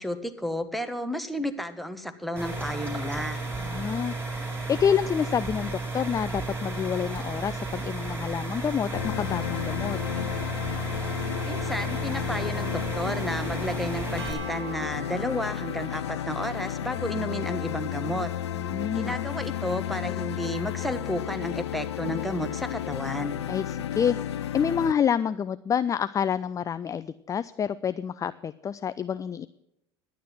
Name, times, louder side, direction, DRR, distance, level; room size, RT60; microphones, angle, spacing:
voice 1, 0.0-3.4 11.4-18.3 18.9-23.4, equal, ahead, 8 dB, 1.2 m, -32 dB
sound 1, 2.4-14.3, right 3 dB, 15° right, 3.9 m, -33 dB
voice 2, 3.6-4.2 4.7-10.0 18.6-19.2 23.5-29.5, left 8 dB, 25° left, 14 dB, 0.4 m, -28 dB
sound 2, 8.9-24.9, left 11 dB, 85° left, 0.4 m, -32 dB
sound 3, 14.2-20.5, right 6 dB, 90° right, 1.1 m, -48 dB
11.0 x 9.2 x 6.0 m, 0.83 s
hypercardioid pair, 80°, 14 cm